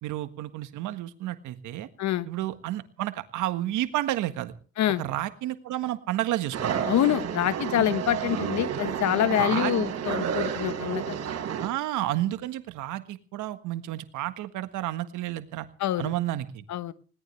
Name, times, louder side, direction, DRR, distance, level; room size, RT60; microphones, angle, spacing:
voice 1, 0.0-1.9 2.3-4.5 5.0-6.8 9.3-9.7 11.6-15.7 16.0-16.6, right 14 dB, 75° right, 10 dB, 1.6 m, -31 dB
sound 1, 6.5-11.7, right 8 dB, 55° right, 3.6 m, -30 dB
voice 2, 6.9-11.2 15.8-16.1 16.7-16.9, left 12 dB, 65° left, 13 dB, 1.3 m, -26 dB
20.0 x 17.5 x 3.4 m, 0.41 s
supercardioid pair, 60°, 31 cm